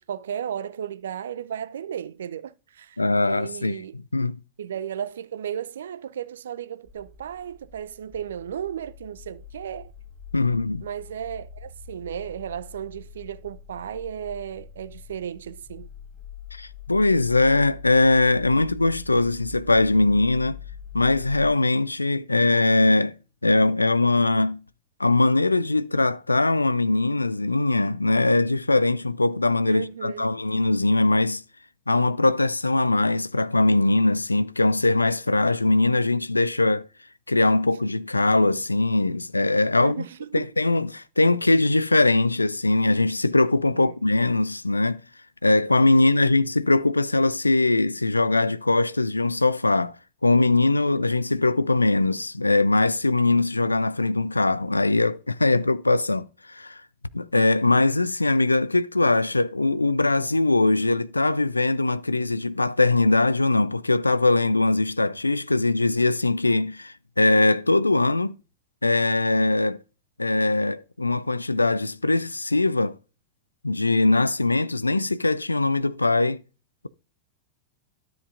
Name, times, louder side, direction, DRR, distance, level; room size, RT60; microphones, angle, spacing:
voice 1, 0.0-3.0 3.2-4.0 4.6-9.9 10.8-15.9 29.7-30.3 39.7-40.5 43.6-44.0, right 9 dB, 65° right, 0.5 m, -34 dB
voice 2, 3.0-3.8 4.1-4.4 10.3-10.8 16.5-20.6 20.9-23.2 23.4-24.6 25.0-31.4 31.9-36.8 37.3-40.0 40.3-45.0 45.4-49.9 50.2-56.8 57.1-68.4 68.8-69.8 70.2-73.0 73.6-76.4, left 2 dB, 80° left, 0.4 m, -21 dB
sound 1, 6.8-21.5, left 6 dB, 10° left, 5.2 m, -44 dB
12.5 x 7.7 x 2.6 m
figure-of-eight pair, 90°, 0 cm